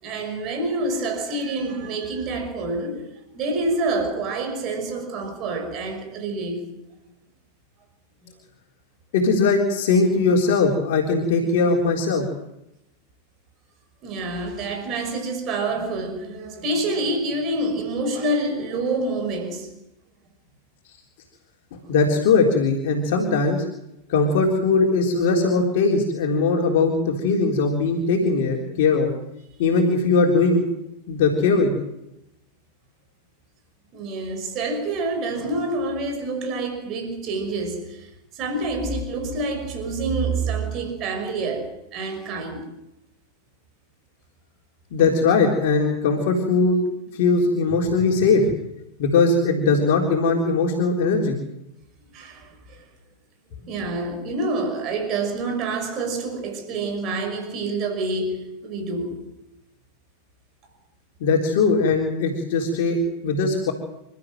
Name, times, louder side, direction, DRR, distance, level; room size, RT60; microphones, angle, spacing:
voice 1, 0.0-6.7 8.2-8.3 14.0-19.7 33.9-42.7 45.0-45.1 52.1-52.9 53.6-59.2, right 2 dB, 35° right, 5.8 m, -27 dB
voice 2, 9.1-12.3 21.9-23.6 24.1-29.1 29.6-30.6 31.1-31.8 44.9-46.8 47.1-48.5 49.0-51.4 61.2-63.7, left 4 dB, 50° left, 3.8 m, -20 dB
28.5 x 13.5 x 7.9 m
figure-of-eight pair, 90°, 0 cm